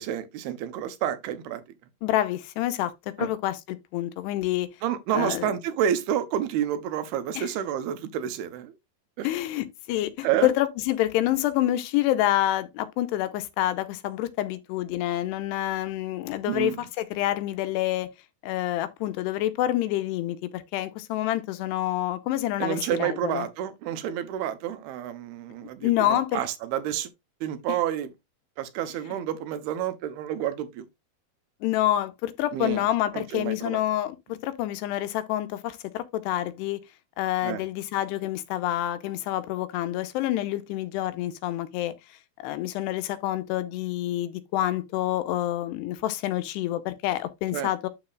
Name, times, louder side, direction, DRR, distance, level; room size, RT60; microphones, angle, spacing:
voice 1, 0.0-1.6 3.2-3.3 4.8-8.8 9.2-9.3 10.2-10.5 16.5-16.8 22.6-27.1 27.4-28.1 28.6-30.9 32.5-32.9 33.1-33.8 37.4-37.7 47.5-47.7, right 10 dB, 75° right, 2.8 m, -29 dB
voice 2, 2.0-4.7 5.1-5.5 7.3-7.5 9.2-18.1 18.4-23.5 25.8-26.4 31.6-36.8 37.2-41.9 42.4-47.9, left 14 dB, 90° left, 2.9 m, -27 dB
12.0 x 4.1 x 2.4 m
omnidirectional pair, 4.7 m